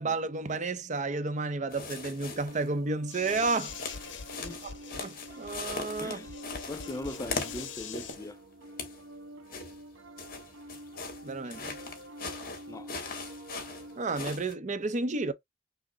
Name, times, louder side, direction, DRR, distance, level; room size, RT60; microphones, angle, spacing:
voice 1, 0.0-3.7 4.6-4.7 5.0-6.2 11.2-11.8 14.0-15.3, right 3 dB, 40° right, 0.6 m, -31 dB
Piano, 1.6-14.0, right 1 dB, 85° right, 0.7 m, -48 dB
sound 1, 1.7-2.7 3.1-8.3 8.6-9.0 9.5-14.5, left 4 dB, 50° left, 1.4 m, -40 dB
sound 2, 3.1-8.2, left 6 dB, 70° left, 0.8 m, -44 dB
voice 2, 4.9-5.4 6.0-6.3 6.7-8.4 11.4-11.5 12.7-12.9, left 2 dB, 15° left, 0.3 m, -41 dB
6.0 x 2.1 x 3.8 m
head